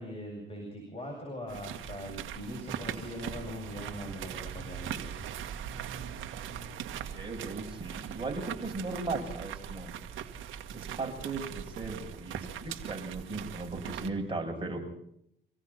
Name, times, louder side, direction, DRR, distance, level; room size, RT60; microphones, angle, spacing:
voice 1, 0.0-5.2, left 1 dB, 30° left, 1 dB, 7.8 m, -41 dB
sound 1, 1.5-14.1, right 9 dB, 85° right, 1.8 m, -40 dB
voice 2, 7.1-9.9 10.7-14.8, right 3 dB, 25° right, 1 dB, 7.8 m, -37 dB
26.5 x 17.0 x 5.8 m, 0.71 s
cardioid pair, 90°, 20 cm